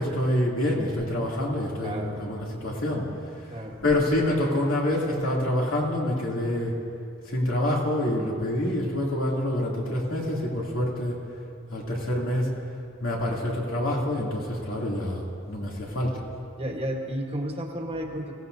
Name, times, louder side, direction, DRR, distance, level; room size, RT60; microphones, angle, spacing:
voice 1, 0.0-3.1 3.8-6.8 7.3-11.2 11.7-12.5 13.0-15.2 15.5-16.2, left 1 dB, 75° left, -4 dB, 2.9 m, -26 dB
voice 2, 1.8-2.2 3.5-3.8 16.6-18.3, right 1 dB, 30° right, 1 dB, 1.4 m, -32 dB
23.0 x 16.5 x 2.8 m, 2.5 s
head